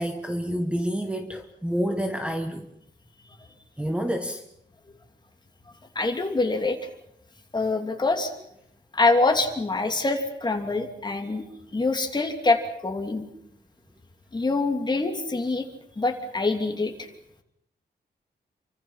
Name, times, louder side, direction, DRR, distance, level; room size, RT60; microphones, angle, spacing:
voice 1, 0.0-2.7 3.8-4.4, equal, 5° right, 6 dB, 1.4 m, -28 dB
voice 2, 5.9-6.8 7.5-8.3 8.9-11.4 11.7-13.2 14.3-15.7 16.0-17.1, left 3 dB, 25° left, 4 dB, 3.0 m, -25 dB
29.0 x 24.5 x 5.8 m, 0.77 s
wide cardioid pair, 165°, 18 cm